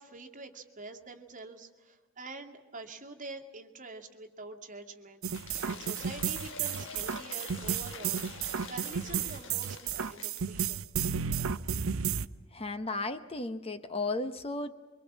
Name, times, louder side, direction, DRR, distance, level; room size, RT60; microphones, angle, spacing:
voice 1, 0.0-8.2 8.6-10.8, right 3 dB, 40° right, 3 dB, 2.2 m, -46 dB
sound 1, 5.2-12.3, right 7 dB, 80° right, 0.7 m, -32 dB
Cheering / Applause / Crowd, 5.3-10.5, left 5 dB, 65° left, 1.5 m, -46 dB
voice 2, 12.5-14.7, left 2 dB, 30° left, 9 dB, 0.9 m, -34 dB
24.5 x 24.0 x 7.4 m, 1.2 s
head